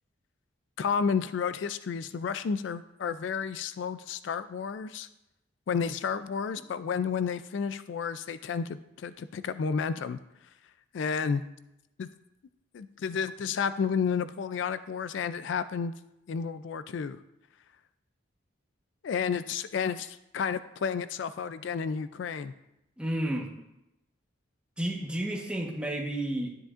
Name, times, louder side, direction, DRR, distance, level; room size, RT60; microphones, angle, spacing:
voice 1, 0.8-5.1 5.7-10.2 10.9-11.4 12.0-12.1 12.7-15.9 16.3-17.2 19.0-22.5, left 6 dB, 70° left, 13 dB, 0.3 m, -31 dB
voice 2, 23.0-23.5 24.8-26.5, right 1 dB, 5° right, -1 dB, 1.1 m, -31 dB
10.0 x 9.8 x 2.5 m, 0.88 s
head